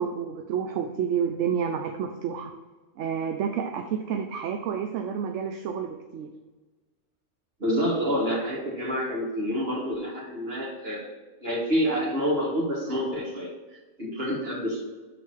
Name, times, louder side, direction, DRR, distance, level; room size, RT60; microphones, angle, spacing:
voice 1, 0.0-2.5 3.0-6.3, right 7 dB, 80° right, 4 dB, 0.9 m, -29 dB
voice 2, 7.6-11.1 11.4-13.5 14.0-14.8, equal, 55° right, -3 dB, 2.1 m, -27 dB
6.0 x 4.3 x 6.3 m, 1.2 s
omnidirectional pair, 1.2 m